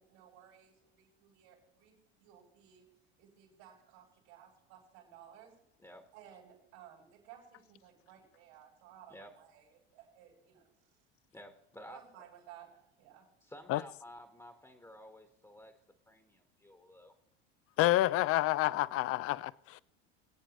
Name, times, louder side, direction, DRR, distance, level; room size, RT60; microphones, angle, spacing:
voice 1, 0.0-1.9 2.2-2.9 3.2-5.5 6.1-10.9 11.9-13.3, right 10 dB, 80° right, 4.7 m, -57 dB
voice 2, 11.3-12.2 13.4-15.8 16.1-17.1, left 1 dB, 10° left, 1.3 m, -53 dB
voice 3, 17.8-19.8, left 16 dB, 45° left, 0.5 m, -29 dB
22.0 x 8.6 x 3.1 m
hypercardioid pair, 85°, 32 cm